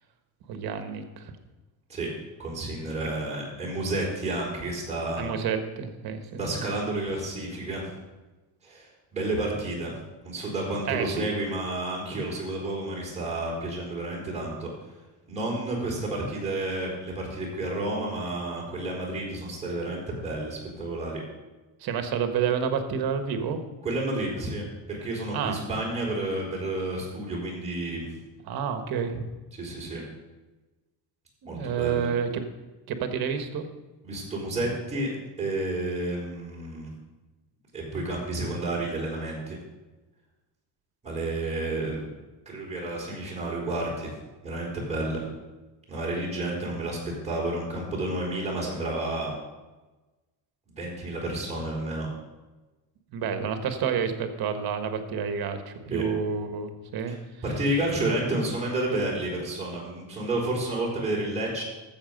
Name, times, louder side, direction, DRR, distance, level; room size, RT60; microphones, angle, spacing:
voice 1, 0.5-1.3 5.2-6.4 10.9-11.3 21.8-23.6 25.3-25.6 28.5-29.3 31.4-32.4 32.9-33.7 53.1-57.1, right 7 dB, 55° right, 7 dB, 1.4 m, -29 dB
voice 2, 2.4-5.3 6.4-7.8 8.6-9.9 10.2-14.7 15.3-21.2 23.8-28.1 29.5-30.0 31.4-32.1 34.0-35.1 35.4-36.9 37.7-39.6 41.0-42.0 42.5-44.1 44.4-45.2 45.9-47.0 47.2-49.3 50.8-52.1 55.8-56.1 57.1-57.2 57.4-61.6, right 2 dB, 15° right, -5 dB, 4.4 m, -30 dB
13.0 x 7.7 x 5.3 m, 1.2 s
cardioid pair, 140°, 42 cm